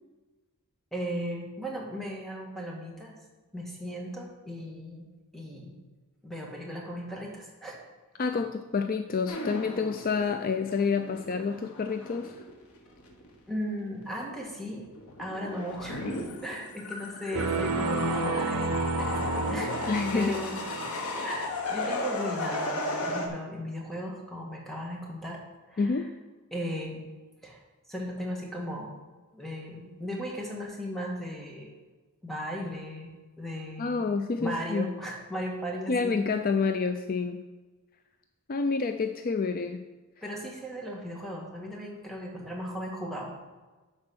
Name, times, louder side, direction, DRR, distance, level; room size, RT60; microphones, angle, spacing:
voice 1, 0.9-3.2 3.5-5.1 5.3-5.8 6.2-7.8 13.5-14.8 15.2-16.2 16.4-19.8 20.1-20.6 21.2-25.4 25.7-26.0 26.5-27.1 27.4-27.6 27.9-29.0 29.3-31.7 32.2-34.1 34.4-36.3 40.2-43.5, equal, ahead, -2 dB, 1.8 m, -37 dB
voice 2, 8.2-12.4 19.9-20.4 20.9-21.2 25.8-26.1 33.8-34.9 35.9-37.4 38.5-39.8, left 4 dB, 40° left, 7 dB, 0.4 m, -28 dB
sound 1, 9.3-13.4 13.7-14.3 14.7-23.3, left 2 dB, 75° left, 1.5 m, -35 dB
sound 2, 17.3-21.3, right 3 dB, 85° right, 0.7 m, -31 dB
10.5 x 4.3 x 6.3 m, 1.2 s
head